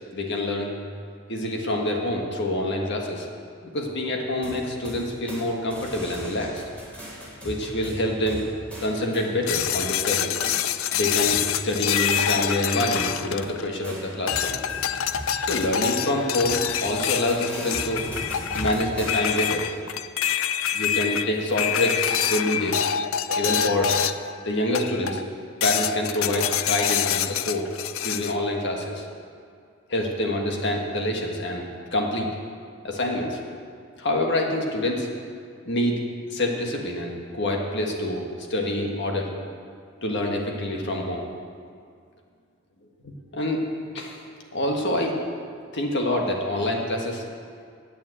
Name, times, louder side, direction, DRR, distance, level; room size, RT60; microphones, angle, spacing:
voice 1, 0.1-0.7 1.3-3.3 3.6-6.6 7.4-8.4 8.8-10.4 10.9-11.4 11.6-14.6 15.5-18.0 18.5-19.6 20.7-22.8 23.4-23.9 24.4-25.2 25.6-27.7 28.0-29.0 29.9-31.6 31.9-32.3 32.8-33.4 34.0-35.1 35.6-36.0 36.3-38.2 38.5-39.5 40.0-41.2 43.0-43.6 43.9-44.2 44.5-45.1 45.7-47.2, left 1 dB, 55° left, 1 dB, 1.6 m, -26 dB
sound 1, 4.4-5.4 5.7-9.8 10.4-10.6 11.3-12.7 13.0-19.7, equal, 5° left, 3.5 m, -39 dB
sound 2, 9.5-13.8 14.3-24.3 24.7-25.3 25.6-28.4, left 9 dB, 75° left, 0.5 m, -26 dB
10.5 x 8.8 x 7.9 m, 2.2 s
head